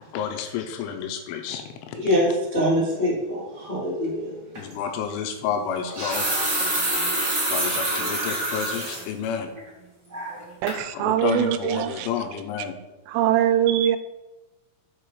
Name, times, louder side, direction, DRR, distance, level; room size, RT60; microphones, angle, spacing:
voice 1, 0.1-2.0 4.6-6.3 7.5-9.5 10.9-12.8, left 7 dB, 85° left, 5 dB, 3.0 m, -30 dB
voice 2, 1.9-4.3, equal, 70° left, -9 dB, 0.6 m, -24 dB
sound 1, 4.5-4.7 5.7-9.0 9.5-9.6 10.1-10.4 10.7-10.8, right 1 dB, 45° right, 1.2 m, -26 dB
voice 3, 10.6-12.1 13.1-14.0, right 11 dB, 90° right, 11 dB, 3.2 m, -22 dB
7.5 x 4.6 x 4.7 m, 1.0 s
omnidirectional pair, 5.7 m